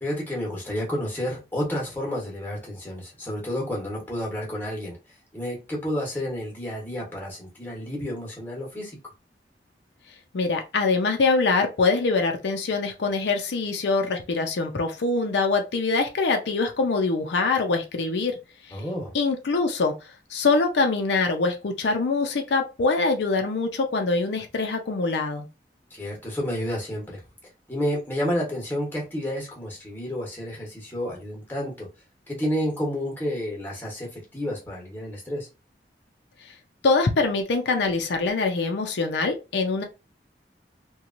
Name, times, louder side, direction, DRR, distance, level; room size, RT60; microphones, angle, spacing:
voice 1, 0.0-5.0 5.3-9.0 18.7-19.1 25.9-27.2 27.7-31.9 32.3-35.5, equal, 10° left, 0.9 m, -30 dB
voice 2, 10.3-18.4 18.7-18.8 19.1-19.9 20.3-25.5 36.8-39.8, left 3 dB, 75° left, 0.5 m, -24 dB
2.9 x 2.2 x 2.5 m
head